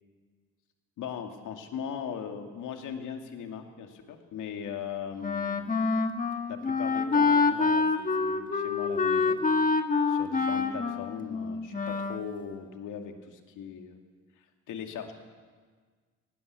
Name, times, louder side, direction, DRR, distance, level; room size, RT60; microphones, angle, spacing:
voice 1, 1.0-5.8 6.5-9.4 10.1-14.0 14.7-15.1, left 7 dB, 80° left, 5 dB, 2.4 m, -39 dB
Wind instrument woodwind instrument, 5.2-12.3, left 4 dB, 25° left, 1.6 m, -27 dB
19.5 x 18.5 x 8.3 m, 1.5 s
cardioid pair, 90°, 30 cm